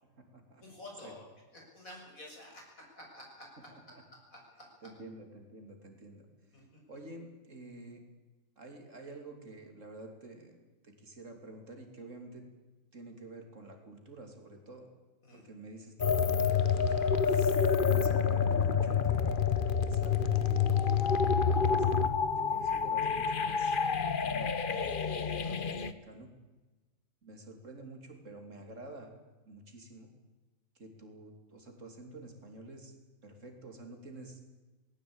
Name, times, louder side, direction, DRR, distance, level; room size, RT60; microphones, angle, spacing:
voice 1, 0.0-0.6 1.0-1.1 3.7-4.0 4.8-6.3 6.9-8.0 8.6-12.5 12.9-14.9 15.3-17.0 17.8-20.8 21.0-22.1 22.4-26.3 27.2-29.1 29.4-30.1 30.7-32.9 33.2-34.4, right 2 dB, 65° right, 4 dB, 3.5 m, -49 dB
voice 2, 0.6-1.2 1.5-2.6 2.9-3.7 4.3-4.6 6.5-6.8 15.2-15.4, left 1 dB, 85° left, -1 dB, 7.4 m, -50 dB
sound 1, 16.0-25.9, left 6 dB, 45° left, 1.1 m, -28 dB
20.0 x 17.5 x 8.9 m, 1.2 s
omnidirectional pair, 1.4 m